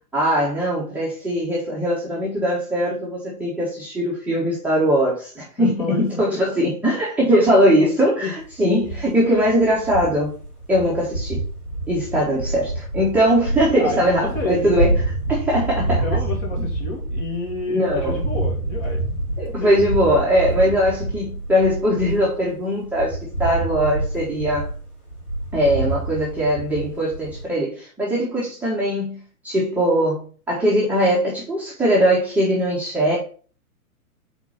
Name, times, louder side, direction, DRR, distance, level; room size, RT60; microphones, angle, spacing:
voice 1, 0.1-10.3 10.7-11.4 11.9-14.9 15.3-16.0 16.6-16.7 17.7-18.2 19.4-24.7 25.5-33.2, equal, 5° right, -7 dB, 1.1 m, -20 dB
voice 2, 5.6-6.4 8.0-8.3 9.3-9.5 13.7-14.8 15.9-19.0 19.5-19.8 20.6-20.8, left 3 dB, 30° left, -1 dB, 2.4 m, -30 dB
sound 1, 8.4-22.5 22.8-27.4, right 2 dB, 80° left, 2.6 m, -27 dB
4.4 x 4.3 x 5.6 m, 0.40 s
figure-of-eight pair, 115°, 44 cm